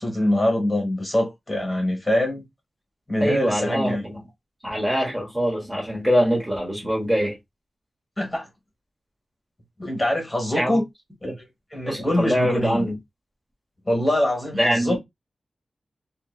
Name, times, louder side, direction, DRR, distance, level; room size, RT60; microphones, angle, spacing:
voice 1, 0.0-2.5 3.1-4.0 8.2-8.5 9.8-10.8 11.2-11.3 11.7-12.9 13.9-15.0, left 1 dB, 20° left, 1.3 m, -24 dB
voice 2, 3.2-4.2 4.6-7.4 10.5-10.8 11.2-11.4 11.8-13.0 14.5-15.0, equal, 15° right, 1.2 m, -23 dB
2.8 x 2.7 x 2.3 m
wide cardioid pair, 135°, 0 cm